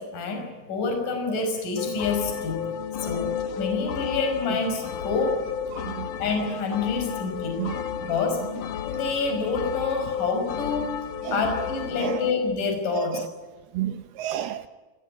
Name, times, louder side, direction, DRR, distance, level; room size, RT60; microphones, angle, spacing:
voice 1, 0.0-2.6 3.0-3.3 3.6-5.4 6.2-7.6 8.0-8.4 8.8-11.0 11.3-13.2, left 4 dB, 40° left, 4 dB, 6.7 m, -27 dB
sound 1, 1.8-12.3, left 8 dB, 80° left, 1.8 m, -32 dB
voice 2, 5.7-6.1 7.6-7.8 11.3-11.4 12.0-12.2 12.9-13.3 13.7-14.6, right 12 dB, 90° right, 10 dB, 2.2 m, -31 dB
30.0 x 19.0 x 8.7 m, 1.3 s
omnidirectional pair, 5.9 m